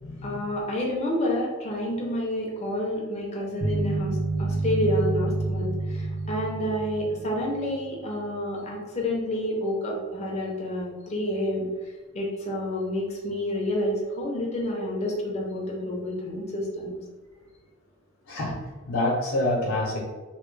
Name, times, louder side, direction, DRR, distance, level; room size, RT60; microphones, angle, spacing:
voice 1, 0.2-11.7 12.1-17.0, left 1 dB, 30° left, -3 dB, 0.7 m, -29 dB
sound 1, 3.6-7.8, right 2 dB, 30° right, 1.1 m, -28 dB
voice 2, 18.9-20.0, left 1 dB, 65° left, -5 dB, 0.8 m, -26 dB
3.1 x 2.8 x 3.2 m, 1.4 s
head